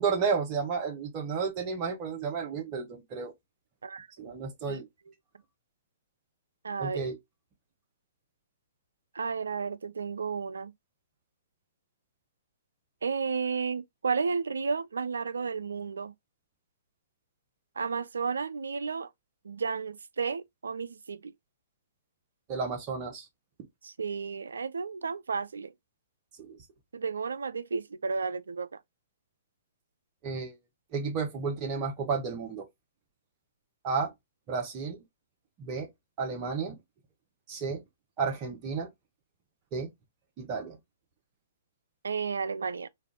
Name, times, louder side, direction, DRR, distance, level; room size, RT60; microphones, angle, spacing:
voice 1, 0.0-3.3 4.2-4.9 6.8-7.2 22.5-23.3 26.4-26.6 30.2-30.6 30.9-32.7 33.8-34.1 34.5-35.0 35.6-35.9 36.2-36.8 37.5-37.8 38.2-38.9 39.7-39.9 40.4-40.8, right 5 dB, 35° right, 0.9 m, -32 dB
voice 2, 3.8-4.3 4.7-4.8 6.6-7.1 9.1-10.7 13.0-16.1 17.8-19.1 19.4-21.3 23.8-25.7 26.9-28.8 42.0-42.9, right 5 dB, 80° right, 0.3 m, -32 dB
3.3 x 2.5 x 3.6 m
hypercardioid pair, 125°, 0 cm